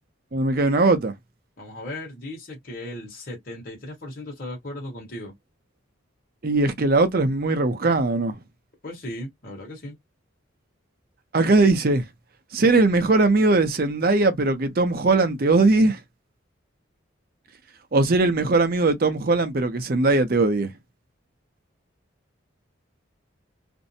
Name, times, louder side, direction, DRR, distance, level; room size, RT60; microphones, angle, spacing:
voice 1, 0.3-1.1 6.4-8.4 11.3-12.0 12.5-16.0 17.9-20.7, right 3 dB, 45° right, 0.5 m, -20 dB
voice 2, 1.6-5.3 8.8-10.0, left 1 dB, 45° left, 1.2 m, -36 dB
2.6 x 2.0 x 2.6 m
head